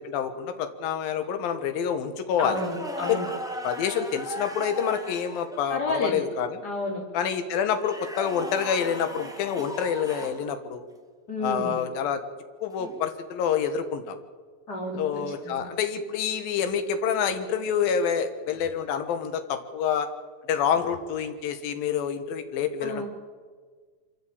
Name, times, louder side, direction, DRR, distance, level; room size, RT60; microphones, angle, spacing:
voice 1, 0.0-2.6 3.0-3.2 3.6-6.6 7.1-10.8 11.4-12.2 12.6-14.2 15.0-20.1 20.5-23.0, left 7 dB, 80° left, 9 dB, 3.2 m, -27 dB
voice 2, 2.4-3.3 5.7-6.2 6.6-7.0 11.3-11.8 14.7-15.6 22.8-23.0, left 1 dB, 25° left, -1 dB, 4.3 m, -31 dB
sound 1, 2.5-5.6 7.7-10.4 12.8-13.0 15.2-15.6 18.5-18.7 20.7-21.0, equal, ahead, 0.9 m, -37 dB
25.0 x 13.5 x 8.8 m, 1.5 s
omnidirectional pair, 4.1 m